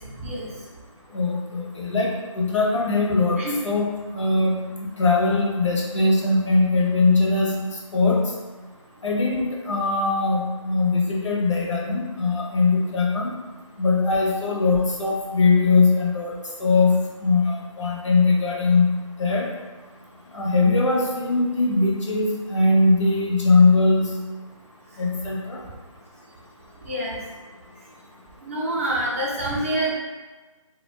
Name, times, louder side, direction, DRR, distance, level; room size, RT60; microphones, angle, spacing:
voice 1, 0.2-0.5 3.4-3.6 26.8-27.2 28.4-29.9, right 1 dB, 25° right, -5 dB, 0.5 m, -26 dB
voice 2, 1.1-3.9 4.1-7.5 7.9-8.3 9.0-13.4 13.8-16.3 16.6-18.9 19.2-19.5 20.3-24.1 25.0-25.6, left 3 dB, 65° left, -3 dB, 0.7 m, -21 dB
2.3 x 2.2 x 3.1 m, 1.3 s
figure-of-eight pair, 155°, 17 cm